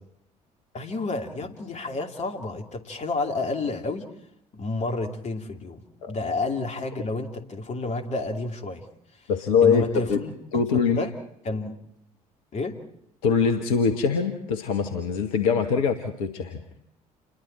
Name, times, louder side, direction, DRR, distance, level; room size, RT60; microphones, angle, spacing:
voice 1, 0.7-4.1 4.5-8.8 9.1-9.3 9.6-11.1 11.4-11.7 12.5-12.8, left 3 dB, 40° left, 4 dB, 2.7 m, -30 dB
voice 2, 9.3-10.2 10.5-11.0 13.2-16.6, left 6 dB, 65° left, 6 dB, 1.4 m, -23 dB
28.5 x 22.0 x 4.5 m, 0.73 s
figure-of-eight pair, 50°, 19 cm